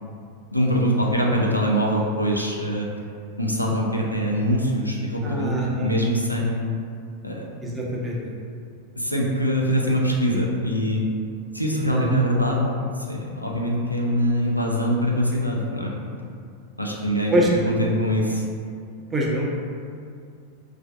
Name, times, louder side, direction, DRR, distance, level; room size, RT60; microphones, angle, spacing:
voice 1, 0.5-2.9 3.4-5.5 5.8-6.7 7.2-7.4 9.0-11.0 11.5-12.6 13.0-15.9 16.8-17.3 17.7-18.4, equal, 90° left, -2 dB, 0.3 m, -23 dB
voice 2, 5.2-5.9 7.6-8.3 11.9-12.1 17.3-17.5 19.1-19.5, equal, 15° right, -3 dB, 0.5 m, -24 dB
3.1 x 2.4 x 2.3 m, 2.3 s
figure-of-eight pair, 90°, 0 cm